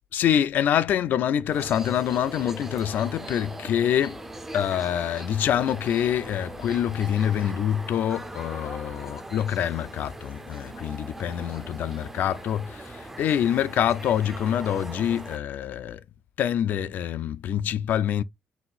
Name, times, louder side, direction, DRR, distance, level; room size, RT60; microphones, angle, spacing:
voice 1, 0.1-4.2 4.5-16.0 16.4-18.2, left 10 dB, 60° left, 0.4 m, -26 dB
sound 1, 1.5-15.4, right 2 dB, 10° right, 0.4 m, -40 dB
4.0 x 2.6 x 3.9 m
cardioid pair, 145°, 4 cm